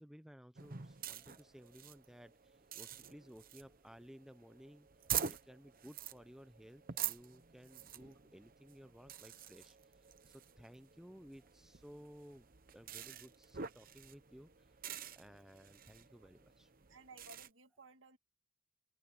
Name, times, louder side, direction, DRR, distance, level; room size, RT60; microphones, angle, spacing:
voice 1, 0.0-12.5 12.7-14.7 15.2-16.7, equal, ahead, 0.5 m, -57 dB
sound 1, 0.6-17.5, right 9 dB, 45° right, 0.9 m, -47 dB
voice 2, 16.9-18.2, right 3 dB, 60° right, 2.1 m, -58 dB
open air
head